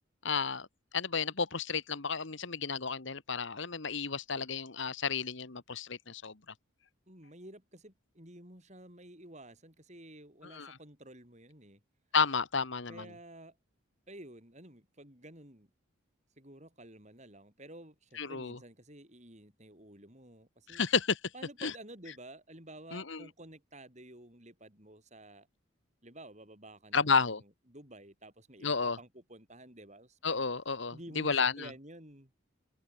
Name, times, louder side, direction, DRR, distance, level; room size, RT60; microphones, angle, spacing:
voice 1, 0.2-0.7 0.9-6.3 10.5-10.8 12.1-13.0 18.2-18.6 20.7-21.2 21.6-21.7 22.9-23.2 26.9-27.4 28.6-29.0 30.2-31.7, left 5 dB, 60° left, 1.4 m, -32 dB
voice 2, 7.1-11.8 12.9-13.6 14.1-15.7 16.4-20.8 21.3-25.5 26.0-30.5 30.9-32.3, right 1 dB, 35° right, 7.0 m, -52 dB
head